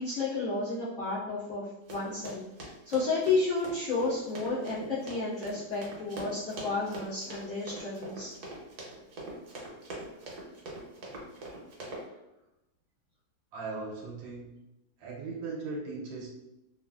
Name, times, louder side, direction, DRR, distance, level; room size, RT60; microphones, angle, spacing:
voice 1, 0.0-8.3, left 3 dB, 45° left, -13 dB, 1.3 m, -32 dB
Run, 1.9-12.0, right 2 dB, 65° right, 1.2 m, -43 dB
voice 2, 13.5-14.5 15.0-16.3, right 3 dB, 85° right, -3 dB, 1.3 m, -38 dB
3.0 x 2.4 x 2.3 m, 0.92 s
omnidirectional pair, 2.0 m